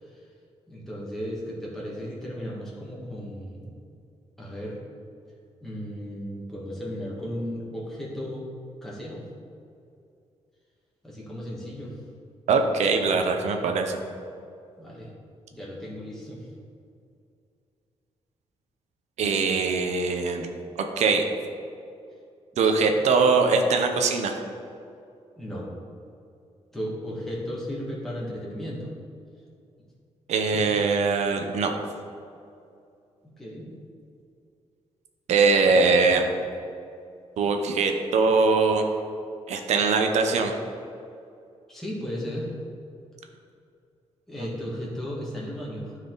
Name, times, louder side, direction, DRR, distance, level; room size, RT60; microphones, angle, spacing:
voice 1, 0.7-3.7 4.4-4.8 5.6-8.5 8.8-9.2 11.0-11.9 14.8-15.1 15.5-16.5 22.5-22.9 25.4-25.7 26.7-28.9 30.5-30.7 33.2-33.7 41.7-42.5 44.3-46.0, equal, 5° left, -6 dB, 1.7 m, -35 dB
voice 2, 12.5-14.0 19.2-20.5 21.0-21.3 22.6-24.3 30.3-31.7 35.3-36.3 37.4-38.8 39.5-40.5, right 4 dB, 85° right, 4 dB, 0.9 m, -22 dB
13.0 x 4.7 x 3.9 m, 2.5 s
wide cardioid pair, 140°, 11 cm